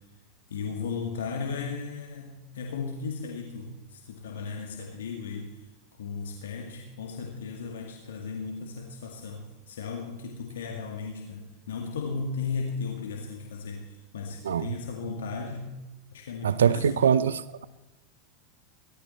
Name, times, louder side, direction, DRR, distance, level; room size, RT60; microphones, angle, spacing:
voice 1, 0.5-5.6 6.0-15.7 16.1-17.1, left 5 dB, 80° left, 2.1 m, -35 dB
voice 2, 16.4-17.6, right 8 dB, 85° right, 0.6 m, -23 dB
17.0 x 13.0 x 4.4 m
hypercardioid pair, 95°, 0 cm